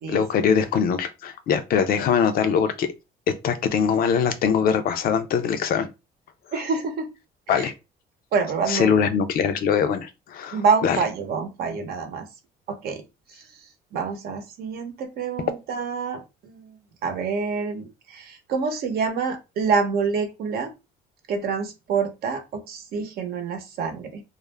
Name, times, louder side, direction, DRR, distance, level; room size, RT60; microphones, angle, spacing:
voice 1, 0.1-2.9 3.4-5.9 7.5-7.7 8.7-11.0, left 7 dB, 60° left, 0.5 m, -22 dB
voice 2, 6.5-7.1 7.5-7.7 8.3-9.0 10.5-12.2 12.7-13.0 13.3-13.5 13.9-20.7 21.3-24.2, right 5 dB, 65° right, 0.8 m, -27 dB
2.4 x 2.0 x 3.1 m
cardioid pair, 110°, 17 cm